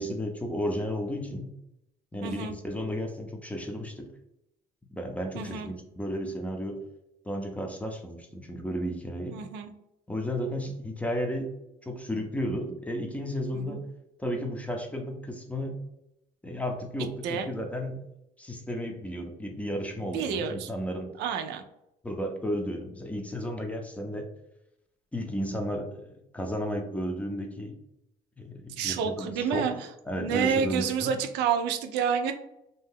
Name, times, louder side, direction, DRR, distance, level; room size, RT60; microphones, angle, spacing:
voice 1, 0.0-1.5 2.1-4.1 4.9-6.8 7.2-9.4 10.1-11.5 11.8-13.9 14.2-15.8 16.4-18.0 18.4-21.1 22.0-24.3 25.1-27.8 28.4-29.7 30.1-31.1, equal, 10° left, 3 dB, 0.5 m, -33 dB
voice 2, 2.2-2.6 5.3-5.7 9.3-9.7 13.5-13.8 17.2-17.5 20.1-20.7 21.2-21.6 28.8-29.9 30.2-32.3, right 7 dB, 85° right, 6 dB, 0.4 m, -29 dB
2.7 x 2.2 x 3.5 m, 0.84 s
cardioid pair, 110°, 17 cm